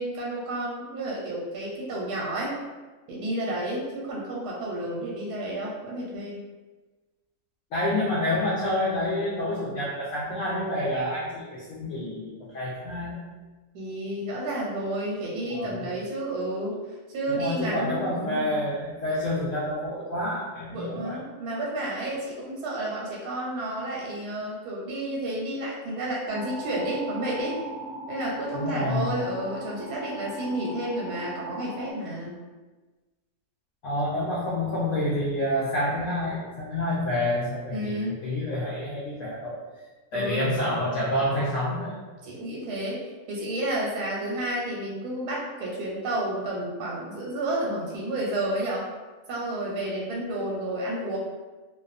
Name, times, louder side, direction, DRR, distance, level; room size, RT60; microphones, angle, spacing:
voice 1, 0.0-2.5 3.1-6.4 13.7-16.8 17.1-18.7 20.7-27.6 28.1-32.3 37.7-38.2 40.1-40.5 42.2-48.8 49.3-51.2, right 1 dB, 85° right, -4 dB, 1.1 m, -31 dB
voice 2, 7.7-13.2 15.5-15.9 17.3-21.2 28.5-29.1 33.8-38.0 38.2-39.6 40.1-41.9, left 1 dB, 70° left, -6 dB, 0.8 m, -28 dB
sound 1, 26.3-31.9, right 1 dB, 20° right, 0.7 m, -39 dB
2.6 x 2.1 x 2.4 m, 1.3 s
omnidirectional pair, 1.6 m